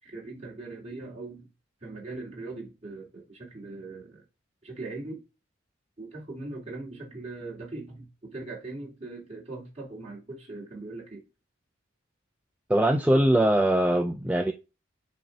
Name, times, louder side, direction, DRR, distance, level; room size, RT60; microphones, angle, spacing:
voice 1, 0.0-1.5 1.8-4.2 4.6-5.2 6.0-11.2, right 2 dB, 35° right, 2.7 m, -40 dB
voice 2, 12.7-14.5, right 1 dB, 5° right, 0.4 m, -22 dB
7.4 x 2.8 x 5.3 m
head